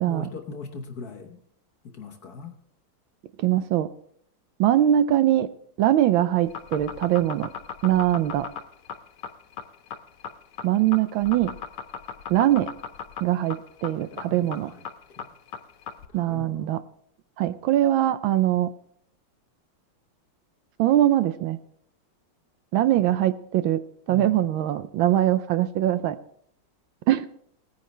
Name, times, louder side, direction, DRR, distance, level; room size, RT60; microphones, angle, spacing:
voice 1, 0.1-1.4 1.8-2.5 14.1-14.8 15.2-15.3 16.1-16.7 22.9-23.1 24.1-24.5, left 3 dB, 55° left, 5 dB, 1.4 m, -39 dB
voice 2, 3.4-3.9 4.6-5.5 5.8-7.5 7.8-8.5 10.6-11.5 12.3-12.7 13.2-14.7 16.1-16.8 17.4-18.7 20.8-21.6 22.7-23.8 24.1-26.2 27.1-27.3, right 12 dB, 75° right, 12 dB, 1.3 m, -22 dB
sound 1, 6.4-16.1, left 7 dB, 90° left, 1.8 m, -37 dB
18.0 x 9.6 x 3.3 m, 0.64 s
omnidirectional pair, 2.4 m